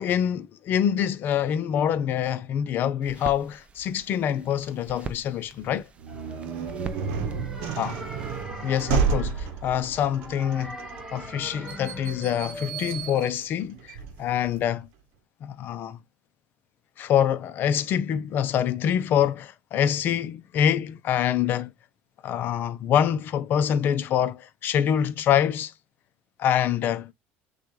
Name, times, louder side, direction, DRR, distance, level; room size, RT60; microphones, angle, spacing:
voice 1, 0.0-5.9 7.8-8.0 8.6-10.8 11.1-14.9 15.4-16.0 17.0-21.7 22.2-25.7 26.4-27.1, left 9 dB, 45° left, 0.6 m, -25 dB
sound 1, 3.0-8.4, right 5 dB, 25° right, 0.5 m, -43 dB
sound 2, 6.0-14.7, right 6 dB, 75° right, 0.8 m, -31 dB
sound 3, 6.1-13.2, equal, 10° right, 1.0 m, -41 dB
6.3 x 2.4 x 3.1 m
cardioid pair, 140°, 5 cm